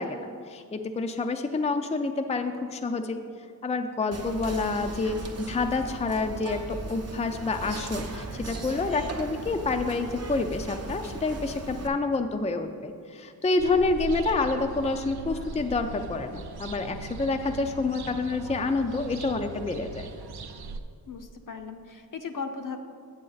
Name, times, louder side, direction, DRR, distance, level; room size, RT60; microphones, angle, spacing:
voice 1, 0.0-3.2 3.6-20.1, left 3 dB, 20° left, 6 dB, 0.4 m, -28 dB
Whispering, 4.1-11.9, right 2 dB, 40° right, 0.7 m, -37 dB
sound 1, 13.6-20.8, right 4 dB, 85° right, 0.6 m, -39 dB
voice 2, 21.1-22.8, left 5 dB, 55° left, 6 dB, 0.7 m, -37 dB
8.7 x 7.4 x 4.0 m, 2.3 s
wide cardioid pair, 70°, 37 cm